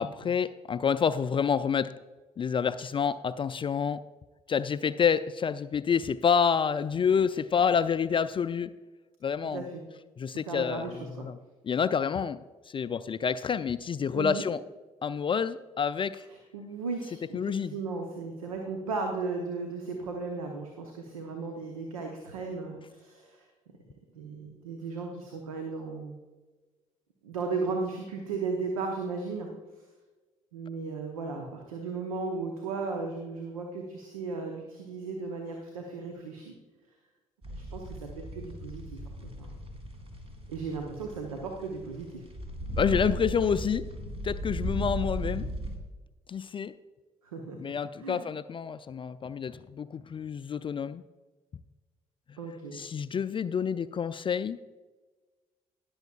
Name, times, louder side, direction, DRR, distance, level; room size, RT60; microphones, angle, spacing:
voice 1, 0.0-1.9 2.4-4.0 4.5-8.7 9.2-9.7 10.2-11.4 11.6-12.4 12.7-14.6 15.0-16.3 17.3-17.7 42.8-43.9 44.2-45.5 46.3-46.7 47.6-51.0 52.7-54.6, left 7 dB, 30° left, 13 dB, 0.4 m, -28 dB
voice 2, 9.5-9.8 10.5-11.3 14.1-14.4 16.3-23.4 24.1-26.2 27.2-29.5 30.5-36.5 37.5-39.0 39.4-39.5 40.5-42.3 47.2-47.6 48.0-48.2 52.4-52.8, right 4 dB, 80° right, 3 dB, 0.9 m, -36 dB
sound 1, 37.4-45.8, equal, 35° right, 2.4 m, -37 dB
19.5 x 7.1 x 2.4 m, 1.3 s
figure-of-eight pair, 45°, 18 cm